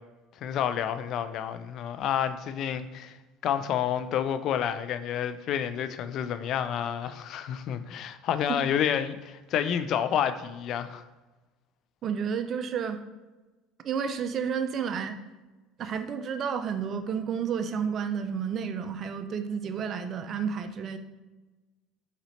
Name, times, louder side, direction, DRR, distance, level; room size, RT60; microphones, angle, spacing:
voice 1, 0.4-3.2 3.4-11.0, left 9 dB, 55° left, 0.3 m, -29 dB
voice 2, 12.0-13.0 13.8-15.2 15.8-21.0, right 7 dB, 45° right, 0.4 m, -31 dB
4.1 x 4.0 x 3.1 m
hypercardioid pair, 80°, 0 cm